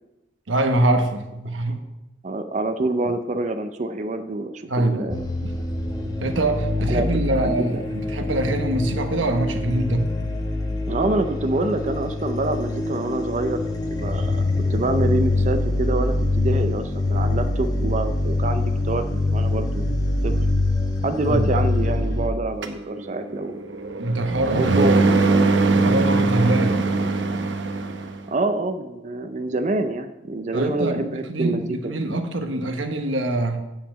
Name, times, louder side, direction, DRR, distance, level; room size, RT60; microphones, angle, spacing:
voice 1, 0.5-1.8 4.7-5.1 5.4-5.5 6.2-10.1 21.3-21.5 24.0-24.9 25.6-26.9 30.5-33.6, right 2 dB, 90° right, 6 dB, 1.1 m, -24 dB
voice 2, 2.2-5.3 6.9-7.8 10.9-13.6 14.0-20.3 21.0-23.7 24.5-25.5 28.3-31.9, right 2 dB, 40° right, 8 dB, 0.5 m, -26 dB
sound 1, 5.1-22.3, left 2 dB, 20° left, 1.0 m, -24 dB
sound 2, 22.6-28.2, right 3 dB, 75° right, 0.8 m, -21 dB
7.5 x 5.6 x 7.4 m, 0.98 s
head